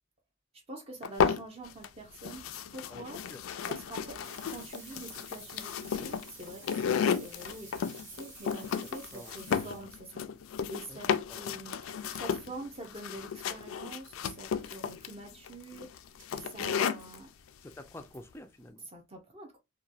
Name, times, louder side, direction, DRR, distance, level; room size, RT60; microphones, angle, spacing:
voice 1, 0.7-4.2 4.5-10.2 10.7-15.9 16.3-17.3 18.9-19.6, right 2 dB, 30° right, 0.6 m, -46 dB
sound 1, 1.0-1.9 2.2-17.2, left 7 dB, 90° left, 0.3 m, -33 dB
voice 2, 2.9-3.4 8.8-9.4 10.9-11.0 11.3-11.6 17.6-18.9, left 1 dB, 10° left, 0.3 m, -49 dB
sound 2, 4.2-10.1 12.9-13.0 13.2-13.3 13.8-13.9 14.1-14.2 14.6-14.8 16.2-16.5 17.0-17.1 17.7-18.2 18.8-18.9, right 3 dB, 75° right, 1.8 m, -52 dB
2.9 x 2.2 x 2.4 m
head